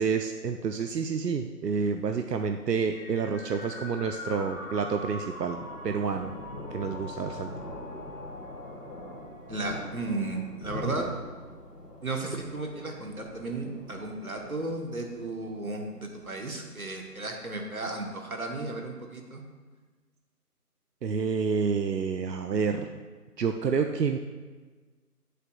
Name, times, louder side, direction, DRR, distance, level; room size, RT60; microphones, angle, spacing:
voice 1, 0.0-6.3 6.7-7.5 21.0-22.9 23.4-24.2, right 5 dB, 90° right, 6 dB, 0.6 m, -29 dB
Thunder, 1.7-18.6, left 1 dB, 80° left, 2.0 m, -45 dB
sound 1, 2.9-10.5, left 2 dB, 60° left, 1.2 m, -44 dB
voice 2, 9.5-11.1 12.0-19.4, right 2 dB, 60° right, 2 dB, 1.2 m, -34 dB
11.5 x 6.7 x 2.3 m, 1.4 s
figure-of-eight pair, 180°, 47 cm